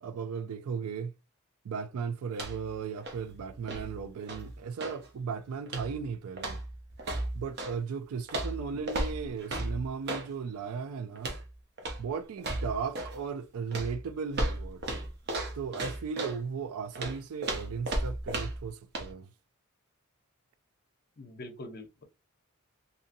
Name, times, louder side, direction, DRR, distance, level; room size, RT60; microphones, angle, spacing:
voice 1, 0.0-1.1 1.6-6.6 7.3-11.3 12.0-14.8 15.5-19.3, right 6 dB, 80° right, 0.4 m, -36 dB
sound 1, 2.3-2.7 3.0-5.1 5.7-6.0 6.4-7.8 8.3-10.3 11.2-11.5 11.8-12.1 12.4-13.2 13.7-16.4 17.0-18.7 18.9-19.1, right 1 dB, 50° right, 0.7 m, -35 dB
voice 2, 21.2-22.0, left 1 dB, 45° left, 0.6 m, -44 dB
2.7 x 2.6 x 2.5 m
head